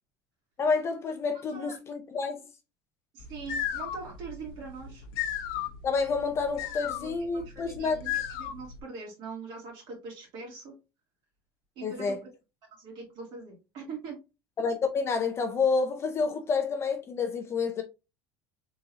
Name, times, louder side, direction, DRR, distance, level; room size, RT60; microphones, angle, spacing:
voice 1, 0.6-2.4 5.8-8.0 11.8-12.2 14.6-17.8, left 4 dB, 25° left, 0.5 m, -29 dB
voice 2, 1.3-1.8 3.1-5.0 6.6-10.7 11.8-12.2 12.8-14.2, right 4 dB, 50° right, 2.6 m, -42 dB
sound 1, 3.2-8.8, left 9 dB, 75° left, 0.7 m, -35 dB
4.0 x 3.7 x 2.8 m
cardioid pair, 165°, 11 cm